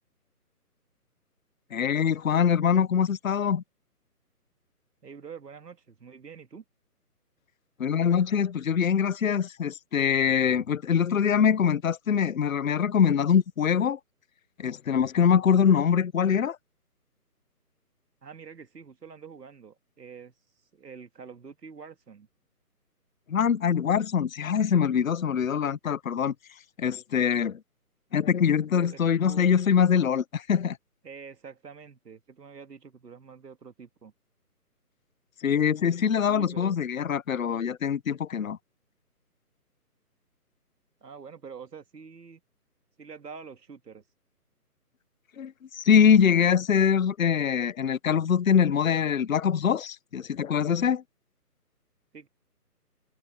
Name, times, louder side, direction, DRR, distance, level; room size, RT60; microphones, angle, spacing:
voice 1, 1.7-3.6 7.8-14.0 14.6-16.6 23.3-26.3 26.8-27.6 28.1-30.8 35.4-38.6 45.4-51.0, left 7 dB, 60° left, 0.7 m, -23 dB
voice 2, 5.0-6.6 18.2-20.3 20.7-22.3 28.7-29.5 31.0-34.1 36.3-36.8 41.0-42.4 43.0-44.0 52.1-52.3, right 6 dB, 90° right, 2.1 m, -46 dB
hypercardioid pair, 175°, 47 cm